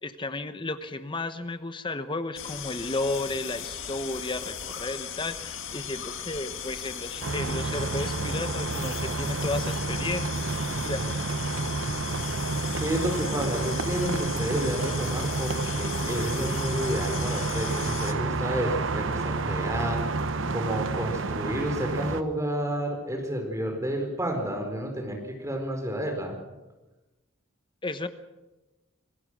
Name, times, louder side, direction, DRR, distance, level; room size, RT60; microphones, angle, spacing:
voice 1, 0.0-10.3 10.8-11.1 27.8-28.1, left 2 dB, 25° left, 11 dB, 1.0 m, -33 dB
sound 1, 2.4-18.1, left 8 dB, 75° left, 1.9 m, -37 dB
sound 2, 7.2-22.2, right 3 dB, 75° right, 1.0 m, -30 dB
voice 2, 12.8-20.0 20.5-26.4, right 1 dB, 15° right, 3 dB, 4.5 m, -30 dB
26.5 x 17.0 x 6.3 m, 1.1 s
head